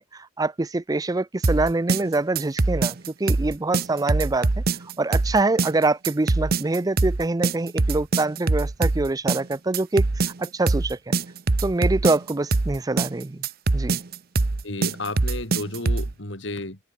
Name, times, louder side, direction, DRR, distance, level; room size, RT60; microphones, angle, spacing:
voice 1, 0.0-4.5 5.0-10.0 10.4-11.2 11.6-13.4 13.7-14.0, right 2 dB, 20° right, 0.5 m, -25 dB
sound 1, 1.4-16.1, right 3 dB, 50° right, 0.8 m, -23 dB
voice 2, 14.6-16.8, left 2 dB, 70° left, 4.5 m, -32 dB
open air
head